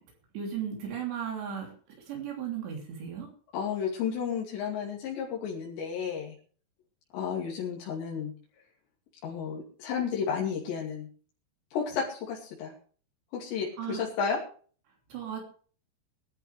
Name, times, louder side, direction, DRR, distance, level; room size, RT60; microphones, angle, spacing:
voice 1, 0.3-1.7 2.1-3.3 13.8-14.0 15.1-15.4, right 8 dB, 80° right, 0 dB, 5.4 m, -35 dB
voice 2, 3.5-6.4 7.1-8.3 9.2-11.1 11.7-12.7 13.3-14.4, left 7 dB, 85° left, -3 dB, 4.8 m, -32 dB
22.5 x 11.5 x 3.4 m, 0.43 s
omnidirectional pair, 4.9 m